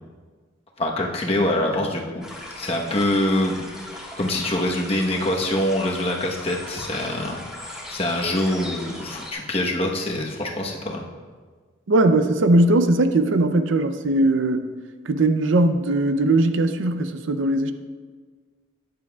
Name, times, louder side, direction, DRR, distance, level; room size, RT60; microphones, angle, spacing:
voice 1, 0.8-2.3 2.6-3.6 4.2-11.0, left 1 dB, 30° left, 0 dB, 1.0 m, -24 dB
sound 1, 2.2-9.3, left 1 dB, 5° right, 1.4 m, -38 dB
voice 2, 11.9-14.7 15.0-17.7, right 2 dB, 75° right, 9 dB, 0.5 m, -19 dB
13.0 x 9.6 x 2.3 m, 1.5 s
head